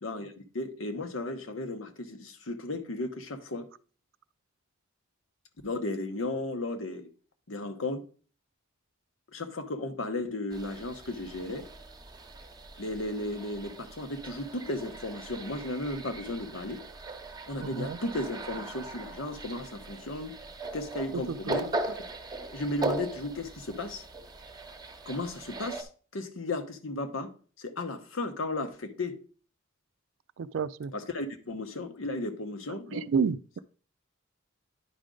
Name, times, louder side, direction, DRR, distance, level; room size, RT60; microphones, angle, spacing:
voice 1, 0.0-3.7 5.6-7.1 7.5-8.0 9.3-11.7 12.8-16.8 17.5-20.4 20.7-22.0 22.5-24.0 25.1-27.3 27.6-29.2 30.9-33.0, left 2 dB, 85° left, 1.0 m, -35 dB
sound 1, 10.5-25.8, right 3 dB, 20° right, 0.8 m, -39 dB
voice 2, 17.6-18.0 21.1-21.6 30.4-30.9 32.9-33.6, right 6 dB, 70° right, 0.4 m, -30 dB
9.8 x 5.1 x 3.8 m
head